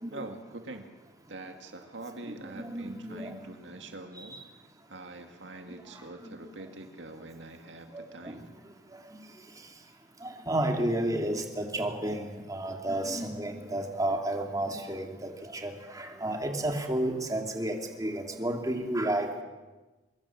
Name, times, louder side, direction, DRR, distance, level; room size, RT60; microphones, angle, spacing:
voice 1, 0.1-0.9 1.3-4.4 4.9-8.5, right 2 dB, 75° right, 5 dB, 2.2 m, -44 dB
voice 2, 2.4-3.3 4.1-4.4 5.7-6.0 6.2-6.4 7.9-8.3 9.1-9.2 10.2-19.3, right 1 dB, 20° right, 2 dB, 2.8 m, -32 dB
24.0 x 23.0 x 7.3 m, 1.2 s
head